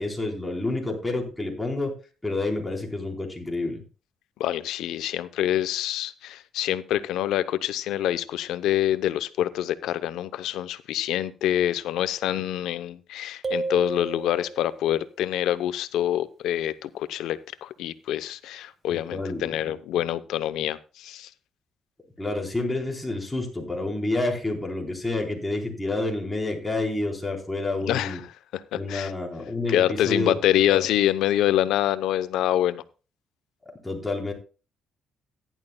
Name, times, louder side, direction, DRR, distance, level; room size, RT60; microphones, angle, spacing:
voice 1, 0.0-1.9 2.2-3.8 18.9-19.7 22.2-28.2 28.7-30.4 30.7-30.9 33.8-34.3, left 2 dB, 10° left, 3.9 m, -29 dB
voice 2, 4.4-21.3 27.9-28.2 28.5-29.1 29.7-32.8, left 12 dB, 85° left, 0.7 m, -26 dB
sound 1, 13.4-14.9, right 3 dB, 35° right, 1.1 m, -32 dB
15.0 x 11.0 x 2.2 m
cardioid pair, 90°, 0 cm